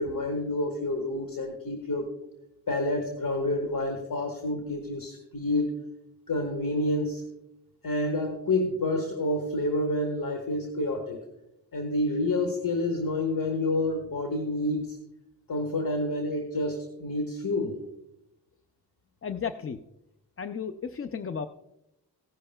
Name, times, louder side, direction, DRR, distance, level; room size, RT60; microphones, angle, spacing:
voice 1, 0.0-2.1 2.7-5.8 6.3-7.2 7.8-11.2 11.7-15.0 15.5-17.8, left 1 dB, 55° left, 4 dB, 1.4 m, -28 dB
voice 2, 19.2-19.8 20.4-21.5, left 6 dB, 35° left, 9 dB, 0.4 m, -33 dB
16.0 x 11.0 x 2.2 m, 0.88 s
wide cardioid pair, 115°, 41 cm